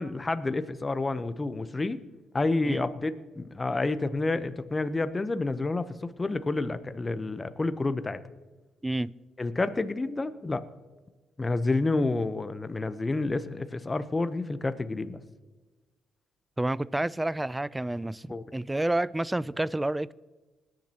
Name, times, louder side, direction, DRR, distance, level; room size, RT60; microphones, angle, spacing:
voice 1, 0.0-2.0 2.3-8.2 9.4-10.6 11.4-15.2 18.3-18.4, left 3 dB, 25° left, 0.8 m, -29 dB
voice 2, 8.8-9.1 16.6-20.1, right 1 dB, 10° right, 0.3 m, -29 dB
20.0 x 10.5 x 2.9 m
cardioid pair, 90°, 0 cm